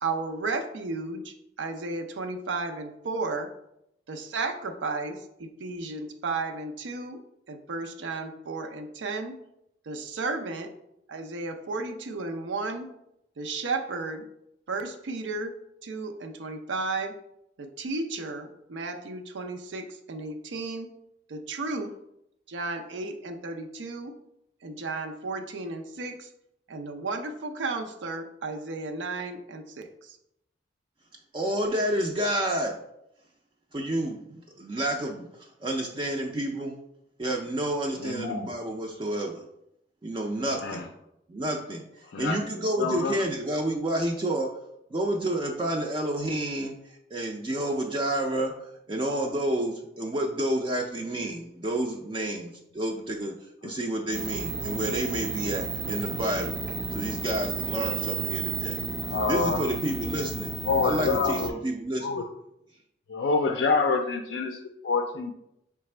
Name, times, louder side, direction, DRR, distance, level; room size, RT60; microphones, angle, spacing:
voice 1, 0.0-3.5 4.1-7.2 7.5-9.4 9.9-10.7 11.1-12.9 13.4-14.2 14.7-15.5 15.8-17.1 17.6-20.9 21.3-21.9 22.5-24.1 24.6-26.3 26.7-30.2, right 3 dB, 90° right, 6 dB, 0.5 m, -33 dB
voice 2, 31.3-32.8 33.7-36.7 37.2-39.4 40.0-40.8 41.3-41.8 42.2-44.5 44.9-46.8 47.1-53.3 53.6-56.6 56.9-58.8 59.3-60.5 60.8-62.2, right 1 dB, 25° right, 1 dB, 0.4 m, -29 dB
voice 3, 38.0-38.5 40.5-40.9 42.1-42.4 42.8-43.1 59.0-59.6 60.6-61.6 62.0-62.3 63.1-65.3, left 4 dB, 65° left, 4 dB, 0.4 m, -27 dB
sound 1, 54.1-61.5, right 4 dB, 70° right, 0.9 m, -33 dB
4.8 x 3.4 x 3.2 m, 0.81 s
head